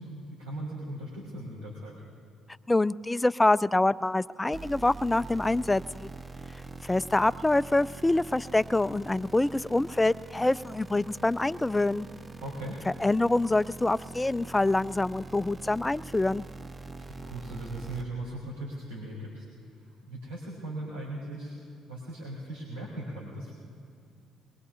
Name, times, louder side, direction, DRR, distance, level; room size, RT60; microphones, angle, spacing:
voice 1, 0.0-1.9 12.4-12.8 17.0-19.4 20.1-21.6 21.9-23.5, right 1 dB, 85° right, -5 dB, 3.7 m, -38 dB
voice 2, 2.7-6.1 6.8-12.1 12.9-16.4, left 2 dB, 15° left, 18 dB, 0.4 m, -26 dB
sound 1, 4.5-18.0, right 3 dB, 25° right, 0.6 m, -44 dB
23.0 x 22.0 x 2.8 m, 2.5 s
hypercardioid pair, 50°, 0 cm